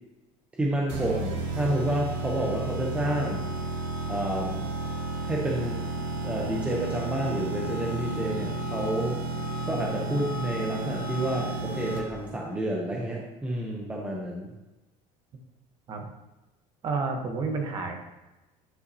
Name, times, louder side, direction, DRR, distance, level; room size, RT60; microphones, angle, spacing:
voice 1, 0.5-3.4 4.1-4.7 5.2-5.8 6.2-9.2 9.6-14.5, right 1 dB, 10° right, -2 dB, 0.6 m, -30 dB
sound 1, 0.9-12.3, right 2 dB, 80° right, 2.0 m, -32 dB
voice 2, 16.8-18.0, right 4 dB, 30° right, 3 dB, 0.9 m, -30 dB
9.7 x 5.5 x 2.7 m, 1.0 s
cardioid pair, 180°, 15 cm